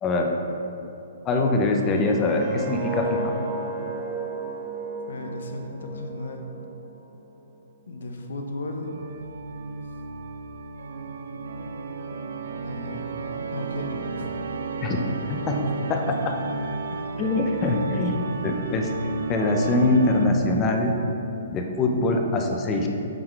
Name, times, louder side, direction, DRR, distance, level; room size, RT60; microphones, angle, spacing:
voice 1, 0.0-0.4 1.2-3.3 14.8-15.0 15.3-16.4 17.2-19.0 19.3-21.0 21.5-22.9, left 2 dB, 25° left, 2 dB, 0.6 m, -23 dB
sound 1, 1.9-6.9 7.3-7.6, right 2 dB, 35° right, 0.9 m, -34 dB
voice 2, 5.1-6.5 7.9-8.9 12.6-13.1 13.5-14.4 17.0-17.8, left 2 dB, 75° left, 4 dB, 0.7 m, -35 dB
Organ, 8.9-20.7, right 3 dB, 80° right, 0.3 m, -33 dB
8.7 x 3.7 x 3.3 m, 2.7 s
hypercardioid pair, 135°, 0 cm